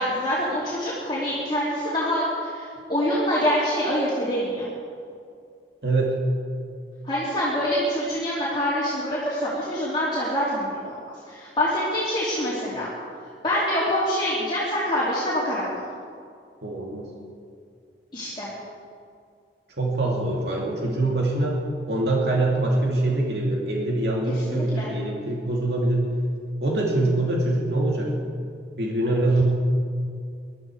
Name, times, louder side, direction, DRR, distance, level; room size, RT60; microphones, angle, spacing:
voice 1, 0.0-4.6 7.0-11.0 11.3-12.9 13.4-15.8 18.1-18.5 24.5-24.9, equal, 25° left, -7 dB, 2.8 m, -25 dB
voice 2, 5.8-6.2 16.6-17.0 19.8-21.6 21.9-26.1 26.6-28.1 28.8-29.4, right 2 dB, 70° right, -2 dB, 2.3 m, -24 dB
21.5 x 12.5 x 4.8 m, 2.3 s
head